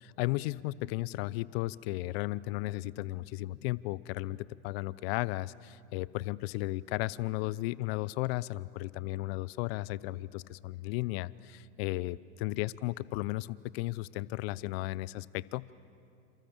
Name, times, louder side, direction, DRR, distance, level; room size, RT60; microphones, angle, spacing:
voice 1, 0.0-15.7, left 19 dB, 55° left, 20 dB, 0.8 m, -35 dB
29.0 x 27.5 x 7.4 m, 2.6 s
hypercardioid pair, 95°, 36 cm